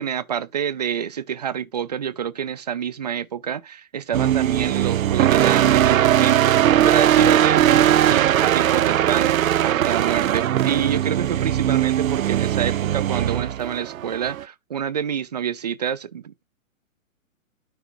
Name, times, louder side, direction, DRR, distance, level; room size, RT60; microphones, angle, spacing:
voice 1, 0.0-16.4, right 8 dB, 30° right, 0.4 m, -27 dB
sound 1, 4.1-14.4, right 11 dB, 75° right, 0.6 m, -19 dB
12.5 x 5.9 x 2.4 m
hypercardioid pair, 150°, 41 cm